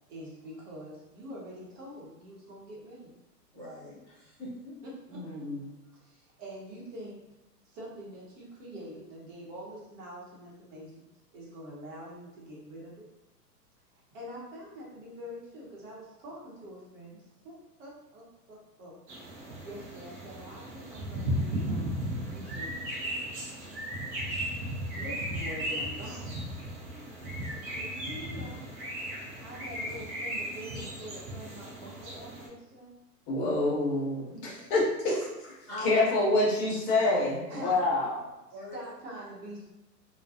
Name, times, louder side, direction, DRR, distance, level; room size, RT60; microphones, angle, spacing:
voice 1, 0.1-3.1 4.8-5.2 5.6-5.7 6.0-7.2 7.6-11.0 11.3-13.1 14.1-17.2 17.4-19.0 19.2-22.8 24.9-26.5 27.7-28.7 29.4-32.9 34.8-35.2 37.5-37.9 38.7-39.7, equal, 50° right, -5 dB, 1.0 m, -45 dB
voice 2, 3.5-4.8 35.7-36.1 37.6-37.7 38.5-38.8, left 1 dB, ahead, -19 dB, 0.4 m, -41 dB
voice 3, 5.1-5.6 33.3-35.1 35.8-38.2, left 2 dB, 35° left, -5 dB, 0.8 m, -27 dB
sound 1, 19.1-32.5, equal, 30° right, 0.7 m, -36 dB
2.3 x 2.3 x 2.6 m, 0.99 s
hypercardioid pair, 115°, 49 cm